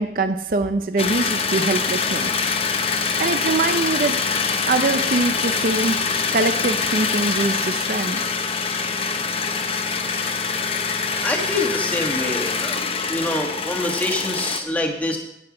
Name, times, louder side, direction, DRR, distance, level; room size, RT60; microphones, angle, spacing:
voice 1, 0.0-2.3 3.2-4.2 4.7-6.0 6.3-8.2, right 3 dB, 50° right, 9 dB, 0.5 m, -23 dB
sound 1, 1.0-14.6, left 5 dB, 35° left, 0.8 m, -24 dB
voice 2, 11.2-12.8 13.1-15.2, left 1 dB, 10° left, 2 dB, 1.4 m, -25 dB
9.8 x 9.7 x 4.9 m, 0.82 s
head